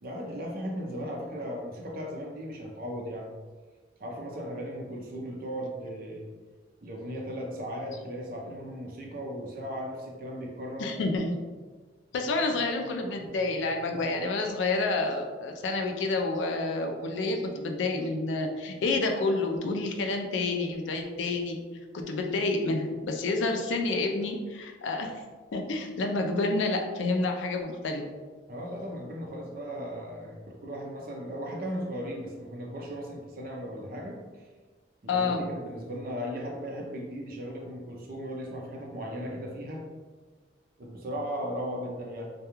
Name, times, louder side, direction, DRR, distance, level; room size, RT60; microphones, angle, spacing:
voice 1, 0.0-3.3 4.0-6.3 6.8-10.9 28.5-34.5 35.0-39.8 40.8-42.3, equal, 50° right, -1 dB, 0.5 m, -37 dB
voice 2, 10.8-11.4 12.1-21.6 21.9-25.1 25.5-28.0 35.1-35.4, left 3 dB, 80° left, 3 dB, 0.4 m, -29 dB
2.3 x 2.2 x 2.9 m, 1.4 s
head